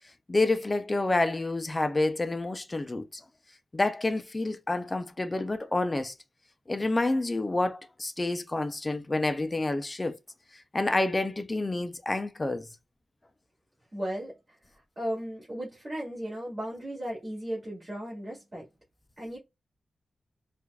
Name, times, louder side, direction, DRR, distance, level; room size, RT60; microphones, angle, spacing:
voice 1, 0.3-3.2 3.7-6.1 6.7-10.2 10.7-12.7, left 2 dB, 25° left, 0.4 m, -28 dB
voice 2, 13.9-18.7 19.2-19.4, equal, 35° right, 2.1 m, -36 dB
4.4 x 2.5 x 2.3 m
wide cardioid pair, 115°, 0 cm